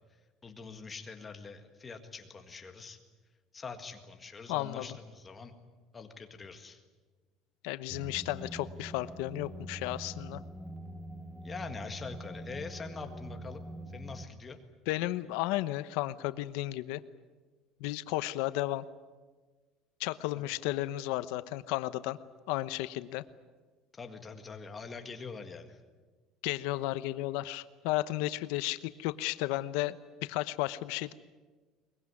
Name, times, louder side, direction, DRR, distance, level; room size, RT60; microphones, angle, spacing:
voice 1, 0.4-3.0 3.5-5.5 5.9-6.8 11.4-13.6 13.9-14.6 20.3-20.4 23.9-25.8, left 4 dB, 15° left, 6 dB, 1.8 m, -44 dB
voice 2, 4.5-4.9 7.6-10.4 14.9-17.0 17.8-18.8 20.0-22.2 22.5-23.2 26.4-31.1, left 16 dB, 90° left, 13 dB, 0.9 m, -33 dB
sound 1, 7.9-14.3, right 1 dB, ahead, 0.9 m, -44 dB
22.5 x 21.0 x 9.7 m, 1.3 s
cardioid pair, 175°, 0 cm